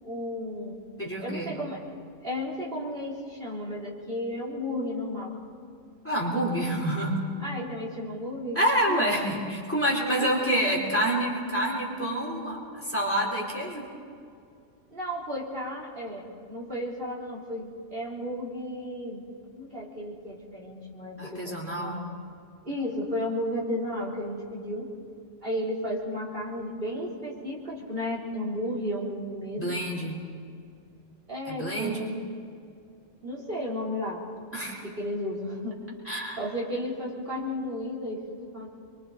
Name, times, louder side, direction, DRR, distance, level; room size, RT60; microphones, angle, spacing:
voice 1, 0.0-0.8 1.2-1.8 2.2-5.4 7.4-8.6 8.9-9.0 10.2-10.3 14.9-19.2 19.5-22.0 22.6-24.9 25.4-29.8 31.3-32.3 33.2-34.2 34.9-35.8 36.4-38.7, left 1 dB, 45° right, -4 dB, 3.9 m, -33 dB
voice 2, 1.0-1.6 6.0-7.3 8.5-13.9 21.2-22.1 29.6-30.2 31.5-32.1 34.5-34.8 36.0-36.4, right 1 dB, 10° left, -2 dB, 3.9 m, -28 dB
29.5 x 24.0 x 4.2 m, 2.4 s
omnidirectional pair, 1.3 m